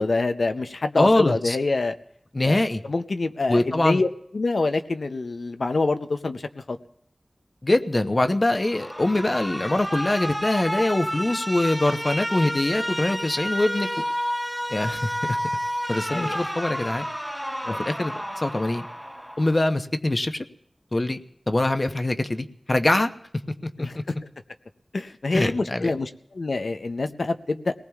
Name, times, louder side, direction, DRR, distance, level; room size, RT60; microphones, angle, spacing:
voice 1, 0.0-1.9 2.4-2.6 2.9-4.1 4.3-6.8 16.1-16.4 17.6-17.8 23.8-24.0 24.9-26.1 26.3-27.7, left 3 dB, 80° left, 8 dB, 0.6 m, -26 dB
voice 2, 1.0-1.6 2.3-2.8 3.5-4.0 7.6-14.0 14.7-15.4 15.9-17.0 17.9-18.9 19.4-20.4 20.9-21.2 21.5-23.1 23.6-24.0 25.3-25.9, left 1 dB, 45° left, 8 dB, 0.8 m, -23 dB
Alarm, 8.6-19.6, equal, ahead, 0.6 m, -30 dB
29.0 x 18.5 x 2.4 m, 0.71 s
wide cardioid pair, 45°, 0 cm